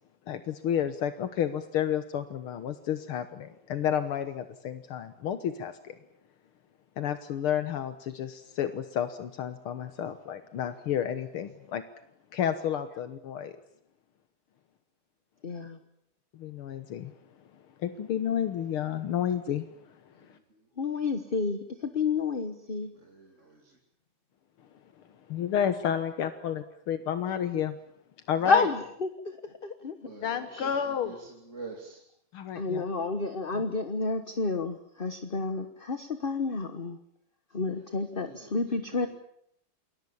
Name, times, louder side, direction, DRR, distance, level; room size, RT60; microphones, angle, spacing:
voice 1, 0.3-5.9 7.0-11.8 12.3-13.5 16.4-17.1 17.8-19.6 25.3-27.8 28.3-28.7 30.2-31.2 32.3-32.8 33.5-33.6, left 9 dB, 80° left, 10 dB, 2.1 m, -31 dB
voice 2, 15.4-15.8 20.8-22.9 28.4-29.3 29.6-30.0 30.5-30.7 32.5-37.0 37.5-39.1, left 4 dB, 30° left, 9 dB, 1.2 m, -30 dB
voice 3, 31.5-32.0 38.2-38.5 38.9-39.1, right 4 dB, 35° right, 0 dB, 3.0 m, -43 dB
28.5 x 21.5 x 7.1 m, 0.72 s
omnidirectional pair, 2.4 m